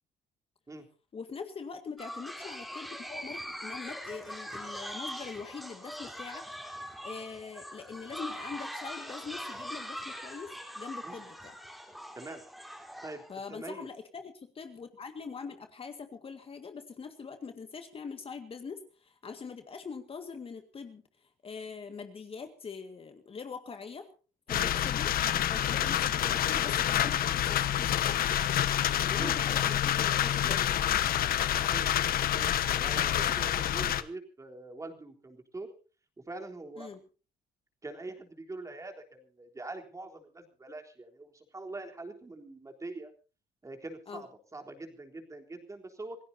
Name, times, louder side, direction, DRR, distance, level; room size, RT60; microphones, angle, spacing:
voice 1, 1.1-6.5 7.0-11.5 13.3-24.1 24.5-25.1 25.5-28.0 29.0-31.2 36.8-37.0 44.1-44.2, left 5 dB, 35° left, 7 dB, 1.9 m, -43 dB
sound 1, 2.0-13.3, equal, ahead, 3.9 m, -42 dB
voice 2, 13.0-13.9 24.5-24.7 25.7-25.9 29.1-29.4 31.6-31.9 32.3-35.7 36.2-36.9 37.8-43.1 43.6-46.2, right 2 dB, 20° right, 4 dB, 3.7 m, -44 dB
sound 2, 24.5-34.0, left 11 dB, 60° left, 1.2 m, -28 dB
27.0 x 16.5 x 2.8 m, 0.36 s
cardioid pair, 110°, 17 cm